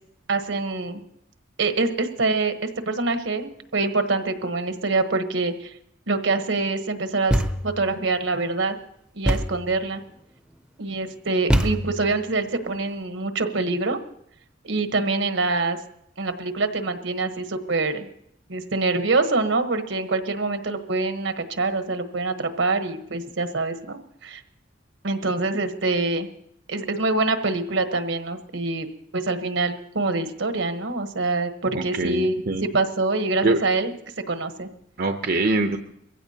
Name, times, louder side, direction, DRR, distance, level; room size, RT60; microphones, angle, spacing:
voice 1, 0.3-1.0 1.6-5.7 6.1-7.4 7.6-8.8 9.1-10.0 10.8-14.0 14.6-15.8 16.2-18.1 18.5-24.4 25.0-26.3 26.7-28.9 29.1-32.4 32.7-33.9 34.3-34.7, right 3 dB, 75° right, 8 dB, 1.1 m, -25 dB
Thump thud, 7.3-7.9 9.2-9.7 11.5-12.2, equal, 5° right, 0.7 m, -23 dB
voice 2, 31.7-32.6 33.4-33.6 35.0-35.8, right 2 dB, 55° right, 6 dB, 0.7 m, -23 dB
22.5 x 16.0 x 2.9 m, 0.74 s
head